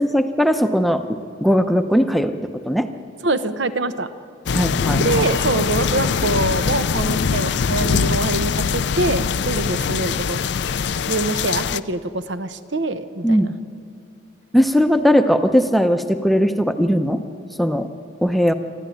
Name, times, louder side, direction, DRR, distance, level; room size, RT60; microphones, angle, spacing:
voice 1, 0.0-2.9 4.5-5.0 13.2-13.5 14.5-17.2 17.6-17.9 18.2-18.5, equal, ahead, 7 dB, 0.8 m, -18 dB
voice 2, 3.2-4.1 4.9-10.4 11.1-13.5, right 2 dB, 65° right, 11 dB, 1.0 m, -24 dB
sound 1, 4.5-11.8, left 6 dB, 60° left, 0.4 m, -22 dB
28.5 x 12.5 x 9.4 m, 2.5 s
head